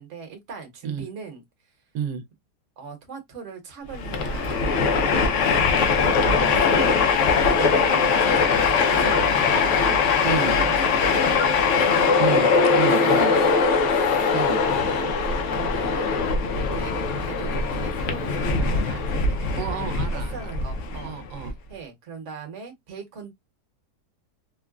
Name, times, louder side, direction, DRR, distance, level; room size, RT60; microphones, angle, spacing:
voice 1, 0.0-1.4 2.8-5.0 6.2-7.0 7.3-11.5 11.8-15.1 15.5-16.3 16.6-19.7 20.1-21.1 21.7-23.3, right 6 dB, 50° right, 1.2 m, -39 dB
voice 2, 1.9-2.2 10.2-10.5 12.2-13.3 14.3-14.6 19.6-20.5 21.0-21.5, right 7 dB, 80° right, 1.2 m, -30 dB
Train, 3.9-21.5, left 5 dB, 60° left, 0.8 m, -21 dB
3.7 x 2.1 x 2.3 m
omnidirectional pair, 1.8 m